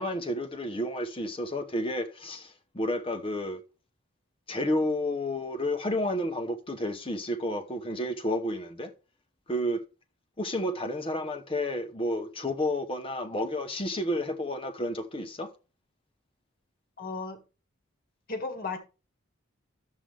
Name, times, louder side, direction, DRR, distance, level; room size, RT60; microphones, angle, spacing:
voice 1, 0.0-3.6 4.5-8.9 9.5-9.8 10.4-15.5, left 1 dB, 25° left, 0.9 m, -31 dB
voice 2, 17.0-17.4 18.3-18.8, left 3 dB, 45° left, 1.8 m, -34 dB
11.0 x 7.5 x 3.4 m
head